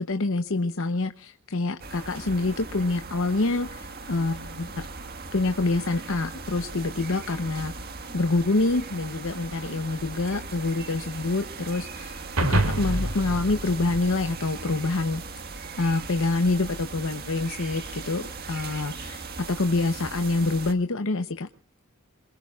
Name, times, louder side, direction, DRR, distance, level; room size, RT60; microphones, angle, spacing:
voice 1, 0.0-4.8 5.3-7.7 8.1-12.2 12.5-15.2 15.8-19.2 19.5-21.5, left 2 dB, 65° left, 8 dB, 0.9 m, -26 dB
sound 1, 1.8-20.7, right 3 dB, 45° right, 1.7 m, -39 dB
sound 2, 12.4-14.9, right 1 dB, 80° right, 2.8 m, -27 dB
26.5 x 22.0 x 2.4 m, 0.37 s
head